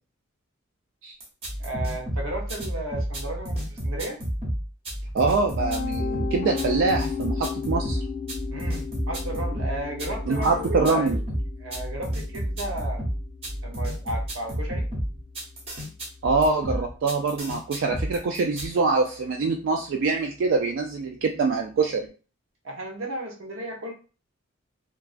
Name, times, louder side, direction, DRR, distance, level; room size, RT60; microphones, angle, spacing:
sound 1, 1.2-18.7, equal, 30° right, 0.7 m, -30 dB
voice 1, 1.6-4.2 8.5-11.2 11.6-13.1 13.6-14.9 22.6-23.9, right 1 dB, 80° right, 1 dB, 0.7 m, -34 dB
voice 2, 5.1-8.0 10.3-11.2 16.2-22.1, right 4 dB, 65° right, 2 dB, 0.3 m, -24 dB
Piano, 5.2-17.1, left 6 dB, 50° left, 0.5 m, -36 dB
2.3 x 2.2 x 2.4 m, 0.35 s
head